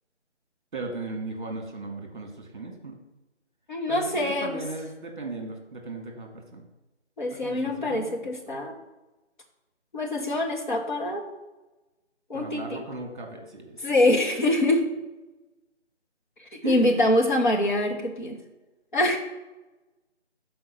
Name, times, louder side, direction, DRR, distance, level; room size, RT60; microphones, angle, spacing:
voice 1, 0.7-3.0 3.9-6.6 7.4-8.1 12.3-13.8 16.6-17.1, right 2 dB, 45° right, 2 dB, 1.7 m, -36 dB
voice 2, 3.7-4.5 7.2-8.8 9.9-11.2 12.3-12.8 13.8-14.8 16.4-18.4 18.9-19.2, left 1 dB, 40° left, 0 dB, 1.4 m, -24 dB
6.3 x 4.7 x 5.7 m, 1.1 s
figure-of-eight pair, 165°, 36 cm